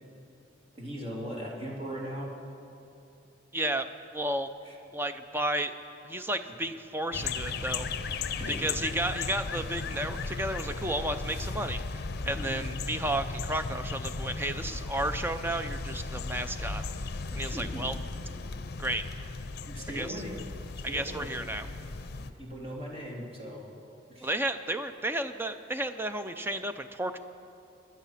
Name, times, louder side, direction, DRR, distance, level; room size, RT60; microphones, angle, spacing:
voice 1, 0.7-2.3 4.6-4.7 8.3-8.7 12.3-12.6 17.4-17.8 19.6-20.3 20.8-21.3 21.6-21.7 22.1-23.6 24.1-24.3, equal, 30° right, -3 dB, 2.9 m, -39 dB
voice 2, 3.5-3.9 4.1-4.5 4.9-5.7 6.0-7.9 8.5-16.8 17.3-17.9 18.8-19.0 19.9-20.2 20.8-21.7 24.2-27.2, right 1 dB, 10° right, 9 dB, 0.6 m, -32 dB
sound 1, 7.1-22.3, left 4 dB, 55° left, 0.7 m, -36 dB
23.5 x 10.5 x 5.8 m, 2.8 s
head